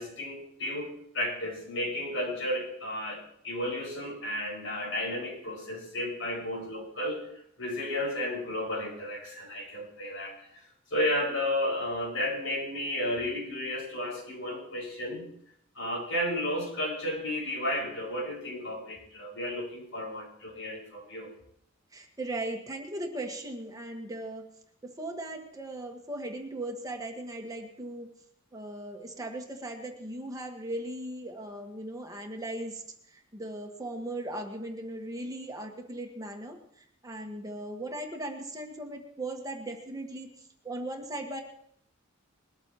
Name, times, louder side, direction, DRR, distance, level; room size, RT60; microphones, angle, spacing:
voice 1, 0.0-7.3 7.6-10.6 10.9-15.3 15.8-21.3, left 1 dB, 80° left, -2 dB, 5.5 m, -33 dB
voice 2, 21.9-24.5 24.8-28.1 28.5-32.8 33.3-36.6 37.0-40.3 40.6-41.4, right 1 dB, 20° right, 3 dB, 1.4 m, -38 dB
21.0 x 13.0 x 3.0 m, 0.68 s
head